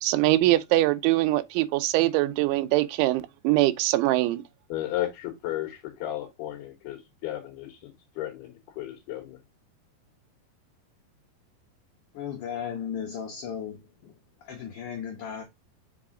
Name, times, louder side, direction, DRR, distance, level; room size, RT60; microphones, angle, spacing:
voice 1, 0.0-4.4, right 17 dB, 90° right, 2.9 m, -23 dB
voice 2, 4.7-9.4, left 13 dB, 70° left, 3.0 m, -34 dB
voice 3, 12.1-14.1 14.4-15.4, left 8 dB, 90° left, 1.7 m, -35 dB
5.9 x 4.8 x 3.6 m
omnidirectional pair, 5.2 m